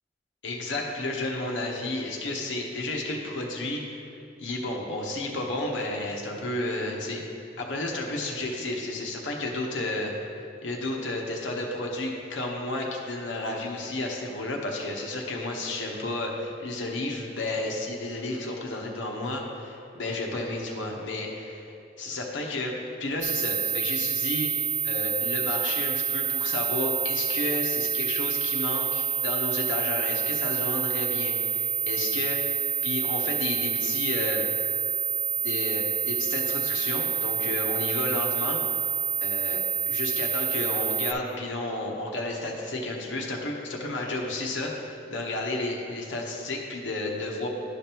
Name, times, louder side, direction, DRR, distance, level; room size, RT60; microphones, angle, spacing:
voice 1, 0.4-3.8 4.4-7.2 7.6-10.1 10.6-21.7 22.0-22.7 23.0-24.5 24.8-34.4 35.4-38.6 39.2-39.6 39.9-47.5, left 2 dB, 85° left, 0 dB, 1.0 m, -31 dB
sound 1, 23.2-41.1, right 6 dB, 45° right, 0.6 m, -28 dB
11.5 x 5.2 x 3.0 m, 2.6 s
head